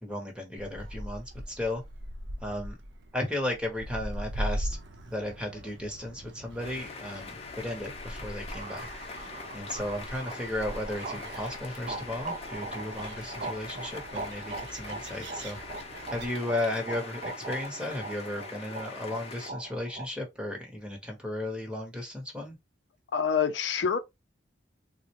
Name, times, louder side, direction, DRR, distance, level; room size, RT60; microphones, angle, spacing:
voice 1, 0.0-1.8 2.4-2.8 3.1-4.8 5.1-15.6 16.1-22.6, left 1 dB, 5° right, 0.8 m, -35 dB
Gull seagull, 0.6-16.3, equal, 75° right, 0.6 m, -41 dB
sound 1, 6.6-19.5, left 4 dB, 35° left, 0.6 m, -43 dB
sound 2, 8.5-20.1, right 3 dB, 40° right, 0.3 m, -41 dB
voice 2, 23.1-24.0, left 7 dB, 75° left, 0.5 m, -26 dB
3.7 x 2.1 x 2.8 m
head